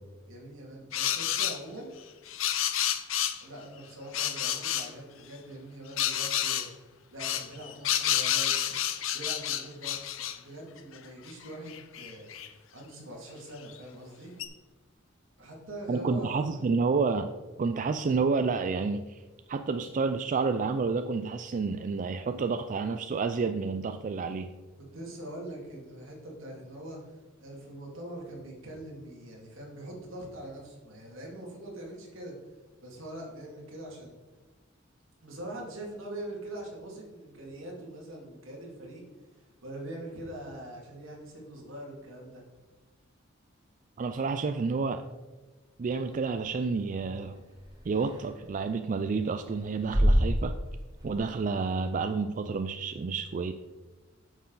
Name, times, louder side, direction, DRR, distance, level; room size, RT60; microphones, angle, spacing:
voice 1, 0.3-1.9 3.4-6.7 7.1-8.7 9.1-14.4 15.4-16.6 24.7-27.1 27.4-32.3 32.8-34.2 35.2-39.0 39.6-42.4, right 1 dB, 75° right, -2 dB, 2.5 m, -43 dB
sound 1, 0.9-1.6 2.3-3.4 4.1-4.9 6.0-6.7 7.2-10.4 11.0-11.1 11.3-12.5 13.7-13.8 14.4-14.5, left 11 dB, 70° left, 0.7 m, -29 dB
voice 2, 15.9-17.3 17.6-19.2 19.5-24.5 44.0-45.0 45.8-47.4 47.9-50.5 51.0-53.5, right 4 dB, 40° right, 8 dB, 0.4 m, -29 dB
sound 2, 45.9-51.8, equal, 20° right, 2.0 m, -31 dB
9.1 x 6.7 x 4.0 m, 1.2 s
head